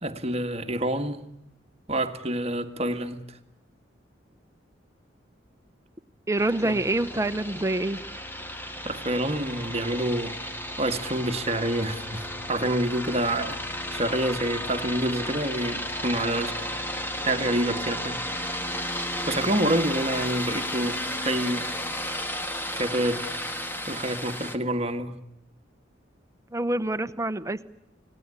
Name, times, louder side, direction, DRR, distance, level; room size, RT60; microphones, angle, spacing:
voice 1, 0.0-1.3 1.9-3.2 6.6-6.8 8.8-10.4 10.8-13.6 13.9-16.6 17.2-18.2 19.3-21.7 22.7-23.4 23.9-25.2, right 1 dB, 35° right, 1.6 m, -27 dB
voice 2, 6.3-8.0 26.5-27.6, right 2 dB, 15° right, 0.9 m, -26 dB
sound 1, 6.4-24.6, left 1 dB, 10° left, 1.6 m, -33 dB
29.5 x 18.0 x 9.8 m
head